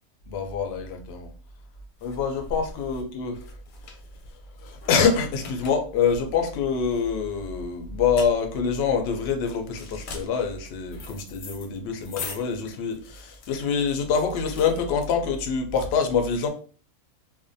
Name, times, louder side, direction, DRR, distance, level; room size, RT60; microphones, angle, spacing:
voice 1, 0.3-1.3 2.0-3.5 4.6-16.5, left 6 dB, 65° left, 4 dB, 0.6 m, -25 dB
sound 1, 1.3-15.6, left 3 dB, 90° left, 1.1 m, -43 dB
2.5 x 2.1 x 2.6 m, 0.40 s
omnidirectional pair, 1.5 m